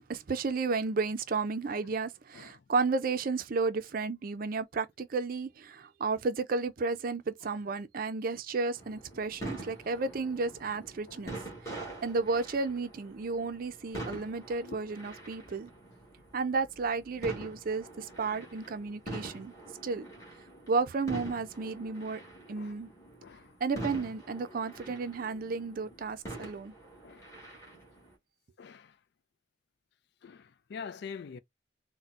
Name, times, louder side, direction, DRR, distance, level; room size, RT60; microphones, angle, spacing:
voice 1, 0.0-11.4 11.6-15.7 16.3-19.5 19.8-20.1 20.7-22.2 22.5-22.9 23.6-26.7, right 4 dB, 50° right, 0.5 m, -33 dB
sound 1, 8.7-28.1, right 2 dB, 15° left, 1.6 m, -45 dB
voice 2, 23.2-23.5 27.0-27.3 28.6-28.9 30.2-31.4, left 6 dB, 60° left, 0.3 m, -45 dB
4.1 x 2.1 x 2.4 m
head